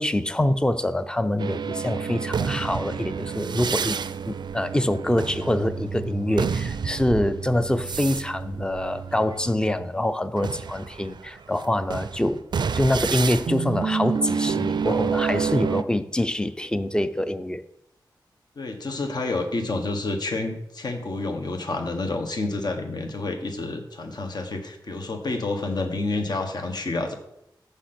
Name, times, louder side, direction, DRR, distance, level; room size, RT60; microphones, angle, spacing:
voice 1, 0.0-4.0 4.3-12.4 12.7-17.6, left 1 dB, 10° left, 11 dB, 0.5 m, -25 dB
sound 1, 1.4-9.9 10.4-15.8, right 6 dB, 70° right, 0.4 m, -29 dB
voice 2, 18.6-27.1, left 2 dB, 65° left, 4 dB, 1.4 m, -29 dB
14.5 x 5.2 x 4.4 m, 0.81 s
wide cardioid pair, 115°, 8 cm